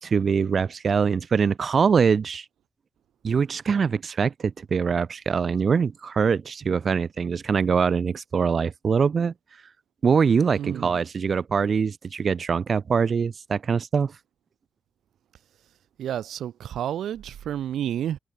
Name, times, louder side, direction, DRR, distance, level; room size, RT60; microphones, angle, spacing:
voice 1, 0.0-2.4 3.2-9.3 10.0-14.1, right 6 dB, 40° right, 1.4 m, -23 dB
voice 2, 10.6-10.9 16.0-18.2, right 10 dB, 85° right, 1.7 m, -30 dB
open air
wide cardioid pair, 155°, 0 cm